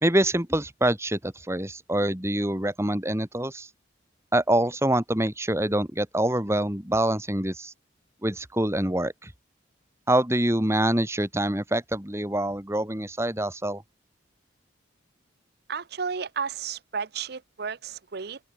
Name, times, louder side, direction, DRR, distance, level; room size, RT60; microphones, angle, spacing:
voice 1, 0.0-3.7 4.3-7.7 8.2-9.3 10.1-13.8, right 1 dB, 15° right, 2.9 m, -25 dB
voice 2, 15.7-18.4, right 6 dB, 60° right, 0.7 m, -33 dB
open air
head